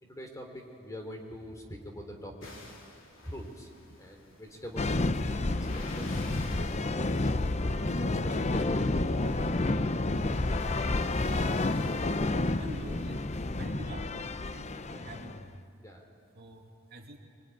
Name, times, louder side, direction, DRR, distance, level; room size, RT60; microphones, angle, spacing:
voice 1, 0.0-2.8 3.2-3.7 4.0-5.0 5.5-6.7 7.6-9.8 15.8-16.0, equal, 15° left, 3 dB, 3.2 m, -44 dB
sound 1, 2.4-13.7, left 2 dB, 75° left, 3.6 m, -52 dB
sound 2, 4.8-15.5, left 2 dB, 35° left, 0.7 m, -30 dB
voice 2, 12.6-13.2 13.5-15.6 16.4-17.2, right 1 dB, 50° right, 1 dB, 2.6 m, -47 dB
24.0 x 23.0 x 9.7 m, 2.6 s
head